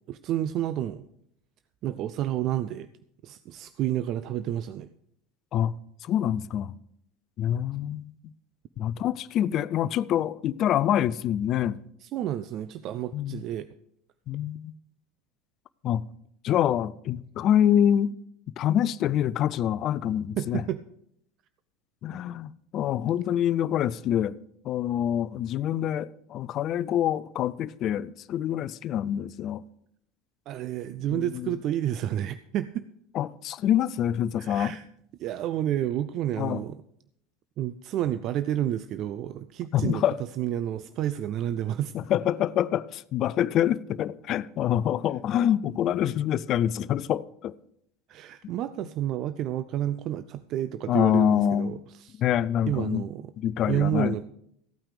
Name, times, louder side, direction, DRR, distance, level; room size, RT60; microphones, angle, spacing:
voice 1, 0.1-1.1 1.8-2.9 3.2-4.9 12.0-13.7 20.4-20.8 30.5-32.9 34.4-34.8 35.2-36.8 37.6-40.0 40.4-41.9 48.1-52.2 52.7-53.3 53.7-54.2, right 11 dB, 50° right, 0.5 m, -30 dB
voice 2, 6.0-6.7 7.4-8.1 8.8-11.8 13.1-13.4 14.3-14.7 15.8-16.0 16.4-18.1 18.6-20.6 22.0-24.4 24.6-29.6 31.1-31.6 33.1-34.7 36.4-36.6 39.7-40.2 41.9-47.5 50.9-51.8 52.2-53.0 53.4-54.2, left 10 dB, 45° left, 0.5 m, -26 dB
15.0 x 8.8 x 4.9 m
hypercardioid pair, 75°, 0 cm